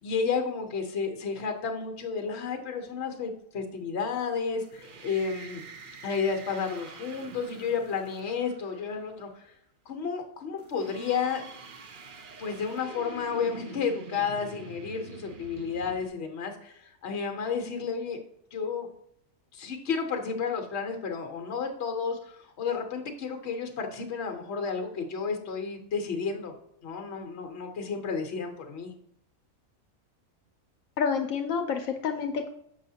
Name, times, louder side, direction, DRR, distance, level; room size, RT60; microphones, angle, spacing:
voice 1, 0.0-5.6 6.0-9.4 9.9-11.4 12.4-18.2 18.5-18.9 19.5-26.5 26.8-28.9, left 5 dB, 60° left, 4 dB, 1.1 m, -32 dB
sound 1, 4.6-9.1 10.6-16.1, right 4 dB, 50° right, 0.7 m, -46 dB
voice 2, 31.0-32.5, left 6 dB, 80° left, 5 dB, 1.0 m, -28 dB
7.0 x 5.6 x 2.7 m, 0.74 s
omnidirectional pair, 1.4 m